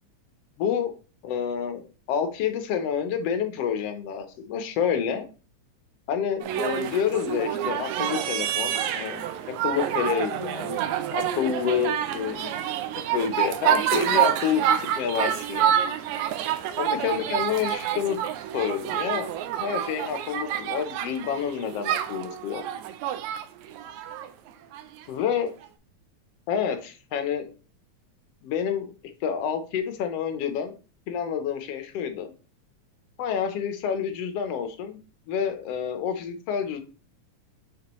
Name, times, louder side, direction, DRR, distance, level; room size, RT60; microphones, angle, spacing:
voice 1, 0.6-0.9 1.2-5.3 6.1-9.3 9.6-10.9 11.1-12.6 13.1-14.6 14.9-15.7 16.8-19.3 19.6-22.6 25.1-25.5 26.5-27.5 28.4-28.9 29.2-30.8 31.1-32.3 33.2-35.0 35.3-36.8, left 8 dB, 70° left, 8 dB, 1.6 m, -28 dB
sound 1, 6.4-24.8 25.6-25.7, right 10 dB, 80° right, 1.9 m, -28 dB
6.5 x 5.2 x 3.0 m, 0.34 s
omnidirectional pair, 3.4 m